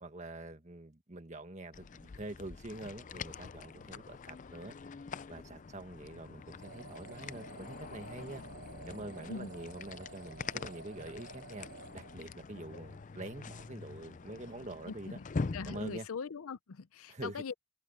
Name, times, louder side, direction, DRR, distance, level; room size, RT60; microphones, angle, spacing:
voice 1, 0.0-4.8 5.3-8.4 8.9-11.7 11.9-15.2 15.4-16.1 17.1-17.4, right 2 dB, 35° right, 1.6 m, -45 dB
sound 1, 1.7-16.0, left 4 dB, 35° left, 0.4 m, -44 dB
sound 2, 6.6-12.7, right 4 dB, 85° right, 1.2 m, -52 dB
voice 2, 14.9-15.3 15.5-17.5, left 5 dB, 85° left, 0.6 m, -41 dB
head